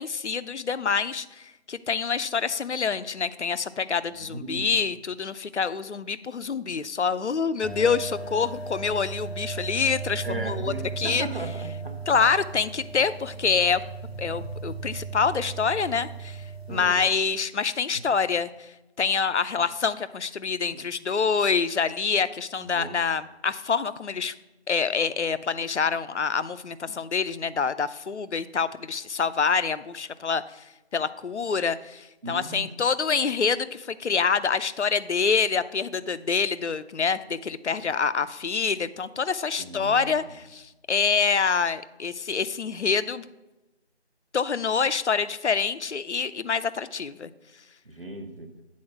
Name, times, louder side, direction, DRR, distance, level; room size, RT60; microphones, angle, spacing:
voice 1, 0.0-11.3 12.1-13.8 14.2-16.4 16.7-18.7 19.0-24.3 24.7-30.6 30.9-40.2 40.5-43.3 44.3-47.3, left 5 dB, 80° left, 14 dB, 0.5 m, -26 dB
voice 2, 4.3-4.7 10.2-12.0 16.7-17.1 17.9-18.0 20.7-20.8 22.6-23.0 32.2-32.7 39.6-40.1 47.8-48.5, right 2 dB, 55° right, 6 dB, 1.2 m, -36 dB
sound 1, 7.6-17.1, right 4 dB, 60° left, 0.9 m, -36 dB
8.4 x 4.3 x 5.9 m, 1.0 s
figure-of-eight pair, 170°, 34 cm